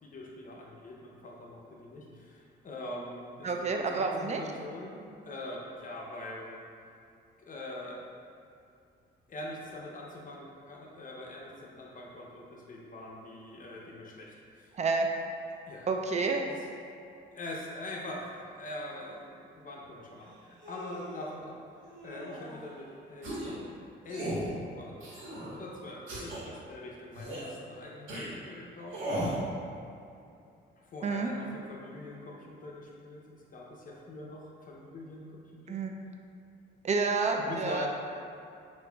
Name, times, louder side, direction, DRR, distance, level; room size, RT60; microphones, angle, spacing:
voice 1, 0.0-6.6 7.4-8.0 9.3-14.8 15.7-15.9 16.4-16.7 17.3-23.7 24.0-24.3 24.8-25.2 25.5-29.4 30.8-35.8 37.4-37.9, left 1 dB, 45° left, -2 dB, 0.6 m, -43 dB
voice 2, 3.4-4.4 14.8-15.1 15.9-16.5 31.0-31.3 35.7-35.9 36.8-37.9, right 4 dB, 35° right, 3 dB, 0.4 m, -29 dB
Human voice, 18.8-18.9 20.2-21.4 21.8-22.8, equal, 65° right, 1.1 m, -47 dB
sound 1, 23.2-23.6 24.1-24.5 25.0-25.5 26.1-26.4 27.1-27.5 28.1-28.3 28.9-29.4, right 1 dB, 80° right, 1.3 m, -35 dB
5.4 x 2.5 x 2.3 m, 2.5 s
cardioid pair, 90°, 20 cm